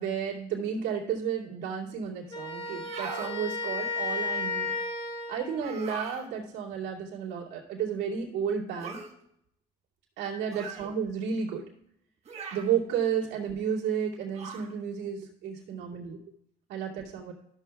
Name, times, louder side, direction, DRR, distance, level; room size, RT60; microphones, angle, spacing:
voice 1, 0.0-4.7 5.3-9.0 10.2-11.6 12.5-16.2 16.7-17.3, right 7 dB, 80° right, -4 dB, 2.5 m, -32 dB
Wind instrument woodwind instrument, 2.3-5.7, left 3 dB, 30° left, 1.9 m, -33 dB
sound 1, 2.7-3.3 5.6-6.2 8.8-9.1 10.5-10.9 12.2-12.7 14.3-14.7, right 5 dB, 40° right, 1.4 m, -39 dB
13.5 x 7.1 x 2.3 m, 0.75 s
cardioid pair, 110°, 17 cm